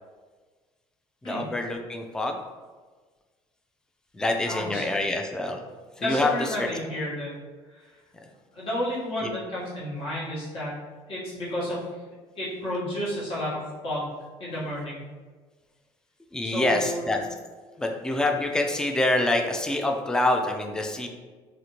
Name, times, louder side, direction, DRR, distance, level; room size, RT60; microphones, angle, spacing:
voice 1, 1.2-2.4 4.1-5.6 6.0-6.7 9.2-9.3 16.3-17.2 17.8-21.1, left 2 dB, 5° left, 3 dB, 0.3 m, -26 dB
voice 2, 4.5-4.8 6.0-7.3 7.7-8.0 8.5-10.8 11.1-11.8 12.3-14.1 14.4-15.0 16.4-17.0, left 1 dB, 50° left, -7 dB, 1.3 m, -31 dB
2.7 x 2.5 x 2.9 m, 1.4 s
cardioid pair, 100°, 12 cm